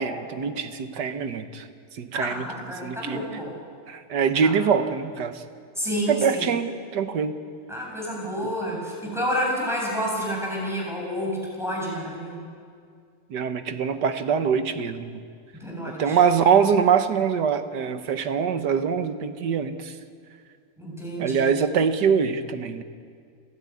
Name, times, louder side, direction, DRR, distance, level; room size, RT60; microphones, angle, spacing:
voice 1, 0.0-1.6 2.0-2.4 2.8-3.3 3.9-5.4 6.1-7.3 8.4-8.5 13.3-15.2 16.0-19.9 21.2-22.8, right 6 dB, 60° right, 9 dB, 1.6 m, -23 dB
voice 2, 2.2-3.5 4.4-4.5 5.8-6.5 7.7-12.4 15.5-16.2 20.8-21.5, equal, ahead, -3 dB, 7.5 m, -29 dB
29.5 x 13.0 x 9.6 m, 2.2 s
omnidirectional pair, 2.3 m